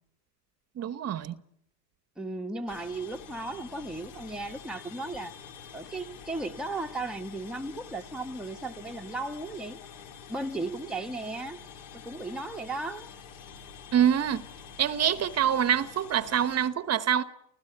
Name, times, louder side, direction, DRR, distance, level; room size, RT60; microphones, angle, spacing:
voice 1, 0.8-1.4 13.9-14.4 14.8-17.2, right 9 dB, 30° right, 1.1 m, -25 dB
voice 2, 2.2-5.3 5.7-9.8 10.3-11.6 12.0-13.1, right 2 dB, ahead, 1.1 m, -35 dB
sound 1, 2.7-16.7, left 7 dB, 60° left, 4.0 m, -47 dB
30.0 x 16.0 x 8.0 m
hypercardioid pair, 105°, 50 cm